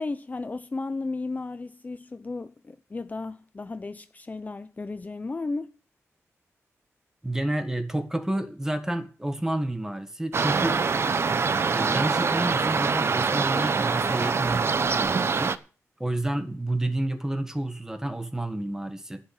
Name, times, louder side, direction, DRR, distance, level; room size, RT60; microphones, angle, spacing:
voice 1, 0.0-5.7, left 3 dB, 30° left, 0.6 m, -34 dB
voice 2, 7.2-10.8 11.2-15.5 16.0-19.2, right 1 dB, 10° right, 1.7 m, -30 dB
sound 1, 10.3-15.6, right 5 dB, 50° right, 0.8 m, -24 dB
11.5 x 8.8 x 6.6 m
wide cardioid pair, 95°, 5 cm